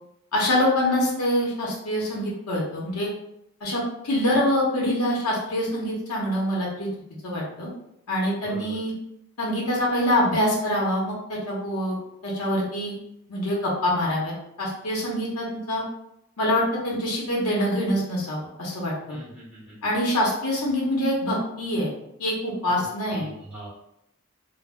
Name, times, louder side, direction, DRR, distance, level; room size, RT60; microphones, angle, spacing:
voice 1, 0.3-3.1 3.6-6.9 7.2-7.7 8.1-8.9 9.4-12.0 12.2-13.0 13.3-14.3 14.6-15.8 16.4-19.2 19.8-21.9 22.2-23.3, left 1 dB, 80° left, -4 dB, 0.7 m, -25 dB
voice 2, 8.4-8.8 19.1-19.8 22.7-22.8 23.1-23.7, right 1 dB, 5° right, -11 dB, 0.9 m, -41 dB
2.0 x 2.0 x 3.5 m, 0.80 s
head